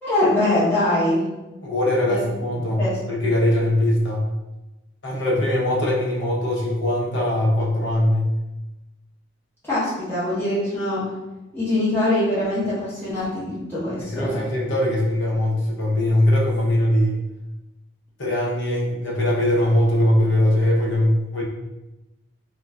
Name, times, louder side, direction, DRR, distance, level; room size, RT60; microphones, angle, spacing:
voice 1, 0.0-1.2 2.1-2.2 2.8-3.0 9.6-11.1 11.5-14.4, left 1 dB, 10° left, -10 dB, 0.7 m, -23 dB
voice 2, 1.6-2.8 3.1-4.2 5.0-8.3 14.0-17.2 18.2-21.4, left 1 dB, 65° left, -3 dB, 0.7 m, -21 dB
2.3 x 2.1 x 3.4 m, 1.0 s
head